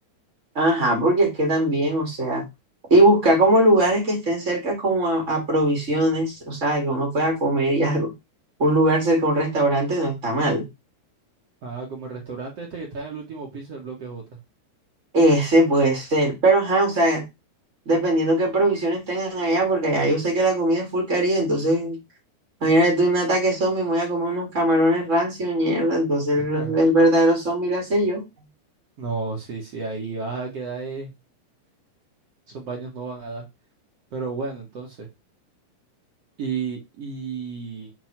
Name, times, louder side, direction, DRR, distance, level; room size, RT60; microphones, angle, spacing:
voice 1, 0.5-2.4 2.9-8.1 8.6-10.6 15.1-17.3 17.8-22.0 22.6-28.2, right 1 dB, 80° right, 1 dB, 0.6 m, -20 dB
voice 2, 11.6-14.2 26.3-26.8 29.0-31.1 32.5-33.4 34.1-35.1 36.4-37.9, right 4 dB, 55° right, -2 dB, 1.7 m, -32 dB
7.9 x 4.0 x 6.1 m, 0.23 s
omnidirectional pair, 5.8 m